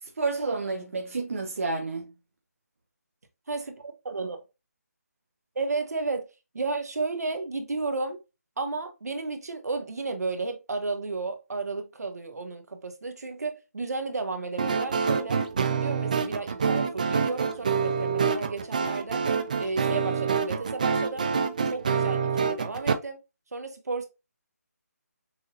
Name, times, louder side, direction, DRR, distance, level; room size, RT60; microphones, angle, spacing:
voice 1, 0.0-2.1, right 3 dB, 55° right, 1.0 m, -30 dB
voice 2, 3.5-4.4 5.5-6.3 6.5-8.2 8.6-15.4 15.7-19.2 19.6-21.3 21.7-23.2 23.5-24.0, right 3 dB, 70° right, 1.4 m, -33 dB
sound 1, 14.6-22.9, right 6 dB, 30° right, 0.4 m, -27 dB
6.3 x 2.7 x 2.5 m
figure-of-eight pair, 170°, 9 cm